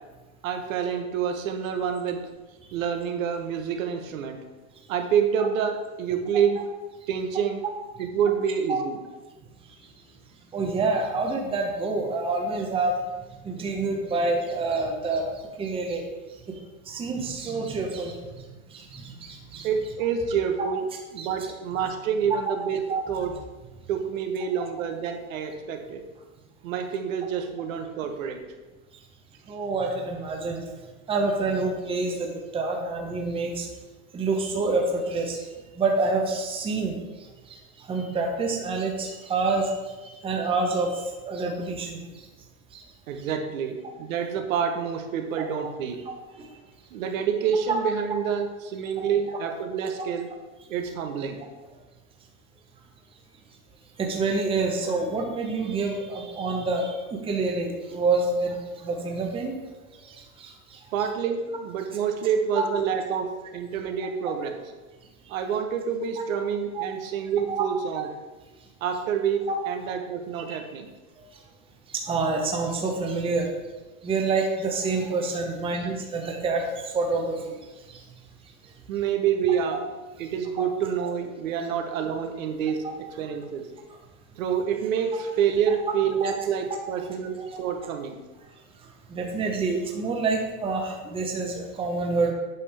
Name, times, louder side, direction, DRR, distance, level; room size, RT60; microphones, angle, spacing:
voice 1, 0.4-2.2 2.7-4.4 4.9-6.6 7.1-7.6 8.0-9.0 19.6-20.8 21.1-23.3 23.9-26.0 26.6-28.4 43.1-46.0 46.9-50.3 50.7-51.4 60.9-64.6 65.3-68.1 68.8-70.9 78.9-79.8 80.2-82.8 83.1-83.7 84.4-88.2, right 7 dB, 70° right, 5 dB, 1.0 m, -27 dB
voice 2, 10.5-12.9 13.4-15.3 15.6-16.0 16.9-18.4 18.7-19.7 21.2-21.3 22.5-22.6 22.9-23.0 29.5-30.6 31.1-32.3 32.5-33.7 34.1-35.4 35.8-36.9 37.9-39.7 40.2-41.0 41.3-42.0 45.4-45.5 46.4-46.5 47.7-47.8 49.0-49.4 54.0-59.5 60.4-60.5 62.5-62.6 66.7-66.8 67.5-67.6 69.5-69.6 70.3-70.6 72.1-73.5 74.0-76.6 76.9-77.5 79.7-79.8 80.6-80.7 82.8-82.9 85.1-85.2 86.2-86.3 87.4-87.5 89.1-92.3, right 3 dB, 15° right, 1 dB, 0.8 m, -27 dB
8.3 x 5.4 x 3.4 m, 1.2 s
hypercardioid pair, 130°, 42 cm